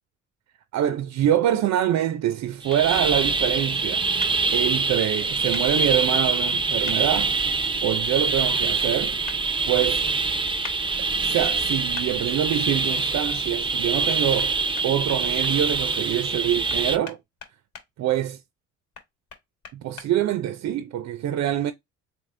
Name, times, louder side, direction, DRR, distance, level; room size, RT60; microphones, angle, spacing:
voice 1, 0.7-4.1 4.5-7.4 7.8-9.1 9.6-10.0 11.0-14.5 14.8-17.2 18.0-18.4 19.7-21.7, right 11 dB, 65° right, 0.5 m, -25 dB
sound 1, 2.6-17.0, right 3 dB, 15° right, 0.5 m, -25 dB
sound 2, 2.7-2.8 4.2-4.3 5.5-5.7 6.8-7.0 9.3-9.4 10.6-10.8 11.9-12.1 14.4-14.5 14.8-15.5 16.7-17.9 18.9-20.1, left 6 dB, 70° left, 1.3 m, -40 dB
3.6 x 2.9 x 3.2 m
cardioid pair, 90°, 30 cm